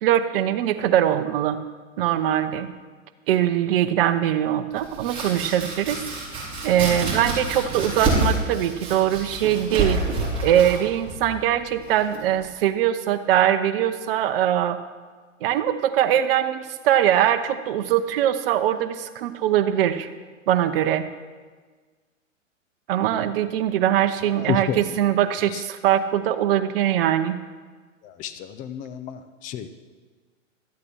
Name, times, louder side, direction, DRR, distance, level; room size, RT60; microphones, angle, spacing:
voice 1, 0.0-1.6 2.0-2.7 3.3-6.0 6.6-10.0 10.4-14.8 15.4-20.1 20.5-21.1 22.9-27.4, right 11 dB, 45° right, 9 dB, 0.9 m, -22 dB
Domestic sounds home sounds, 4.7-12.5, right 2 dB, 15° right, 4.6 m, -28 dB
voice 2, 24.3-24.8 25.5-25.6 28.0-29.7, left 9 dB, 20° left, 11 dB, 0.6 m, -30 dB
12.5 x 8.6 x 6.3 m, 1.5 s
hypercardioid pair, 120°, 39 cm